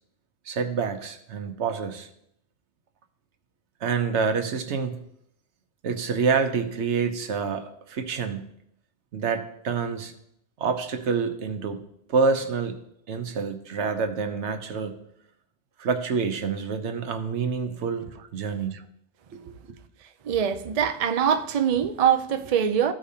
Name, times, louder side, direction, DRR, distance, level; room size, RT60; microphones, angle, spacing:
voice 1, 0.5-2.1 3.8-5.0 5.8-8.4 9.1-10.1 10.6-11.8 12.1-12.8 13.1-15.0 15.8-18.7 19.3-19.5, right 5 dB, 80° right, 1.1 m, -27 dB
voice 2, 20.2-22.9, right 8 dB, 50° right, 0.5 m, -23 dB
14.0 x 5.0 x 2.8 m
omnidirectional pair, 1.2 m